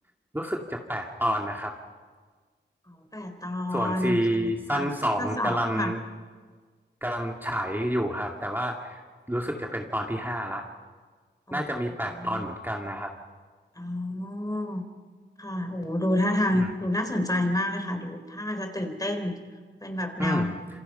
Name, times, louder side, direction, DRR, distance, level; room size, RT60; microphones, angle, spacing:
voice 1, 0.3-1.7 3.7-6.0 7.0-9.0 9.3-10.7 11.5-13.1 16.6-16.7 20.2-20.6, equal, 10° right, 1 dB, 2.2 m, -29 dB
voice 2, 2.9-4.9 5.2-5.9 11.5-11.7 12.1-12.5 13.8-14.8 15.4-19.4 19.8-20.6, left 1 dB, 20° left, 6 dB, 3.7 m, -29 dB
27.5 x 26.5 x 5.5 m, 1.5 s
wide cardioid pair, 55°, 19 cm